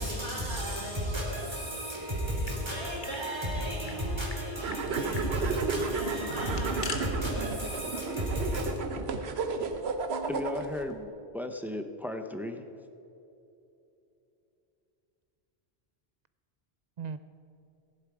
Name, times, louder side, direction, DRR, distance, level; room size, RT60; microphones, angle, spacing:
voice 1, 0.0-8.7, equal, 25° right, -3 dB, 3.2 m, -33 dB
sound 1, 2.2-3.2 3.5-3.6 3.9-4.4 4.7-4.8 5.1-5.3 6.3-7.0, left 4 dB, 50° left, 1.3 m, -41 dB
sound 2, 4.6-10.8, right 4 dB, 75° right, 1.1 m, -33 dB
voice 2, 9.6-10.4 10.8-11.3 17.0-17.2, right 6 dB, 55° right, 12 dB, 0.5 m, -42 dB
voice 3, 10.3-12.7, left 1 dB, ahead, 6 dB, 0.5 m, -36 dB
15.5 x 11.0 x 4.9 m, 2.8 s
omnidirectional pair, 1.1 m